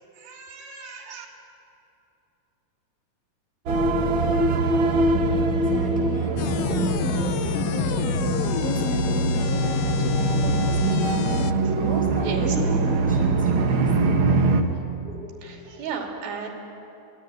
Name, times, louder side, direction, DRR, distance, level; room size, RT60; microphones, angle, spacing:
voice 1, 0.2-1.3 12.2-12.5 15.4-16.5, right 6 dB, 70° right, 1 dB, 4.6 m, -35 dB
sound 1, 3.7-14.6, right 3 dB, 85° right, 1.1 m, -23 dB
voice 2, 5.5-13.9 14.4-14.5 14.8-15.2 15.5-15.6, equal, ahead, -1 dB, 4.3 m, -35 dB
sound 2, 6.4-11.5, left 11 dB, 75° left, 2.2 m, -27 dB
24.0 x 19.0 x 9.5 m, 2.9 s
omnidirectional pair, 4.4 m